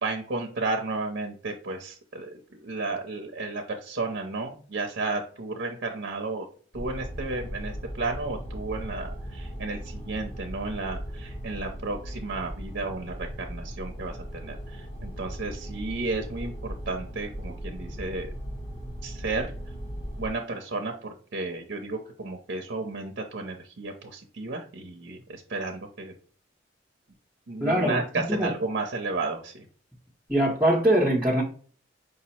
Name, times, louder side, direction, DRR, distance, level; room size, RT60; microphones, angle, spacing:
voice 1, 0.0-6.5 6.7-18.3 19.0-19.5 20.2-26.1 27.5-29.6, right 3 dB, 55° right, 3 dB, 0.6 m, -33 dB
sound 1, 6.7-20.3, equal, 30° left, 0.7 m, -38 dB
voice 2, 27.6-28.0 28.3-28.5 30.3-31.4, right 1 dB, 5° right, -6 dB, 0.7 m, -22 dB
5.0 x 2.0 x 4.2 m, 0.43 s
head